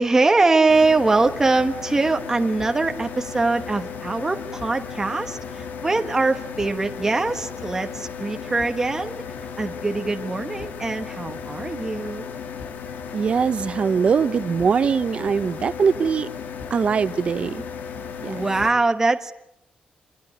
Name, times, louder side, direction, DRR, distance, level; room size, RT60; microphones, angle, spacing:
voice 1, 0.0-9.2 9.6-12.2 18.3-19.3, right 3 dB, 15° right, 6 dB, 1.2 m, -22 dB
sound 1, 0.7-18.7, left 6 dB, 75° left, 2.6 m, -35 dB
voice 2, 13.1-16.3 16.7-17.6 18.2-18.4, right 6 dB, 40° right, 14 dB, 0.9 m, -22 dB
25.5 x 22.0 x 9.6 m, 0.80 s
wide cardioid pair, 165°, 3 cm